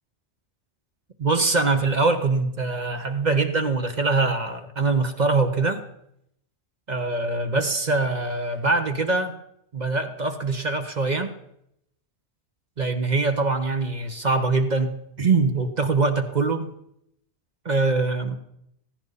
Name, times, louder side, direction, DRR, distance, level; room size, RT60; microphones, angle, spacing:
voice 1, 1.2-5.8 6.9-9.3 9.7-11.3 12.8-16.7 17.6-18.4, right 3 dB, 40° right, 6 dB, 1.1 m, -23 dB
16.0 x 15.5 x 4.1 m, 0.76 s
omnidirectional pair, 1.2 m